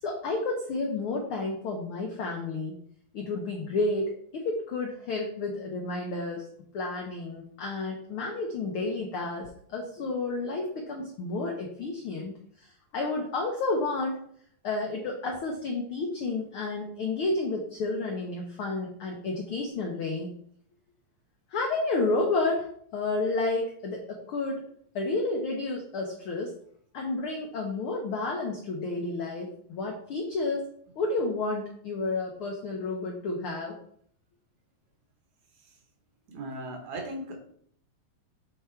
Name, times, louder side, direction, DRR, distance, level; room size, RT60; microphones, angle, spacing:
voice 1, 0.0-2.8 3.1-6.4 6.7-14.2 14.6-20.3 21.5-24.6 24.9-26.5 26.9-30.7 31.0-33.8, left 3 dB, 80° left, 1 dB, 1.2 m, -31 dB
voice 2, 36.3-37.4, right 1 dB, 70° right, 3 dB, 2.3 m, -37 dB
7.7 x 3.6 x 4.4 m, 0.63 s
omnidirectional pair, 3.6 m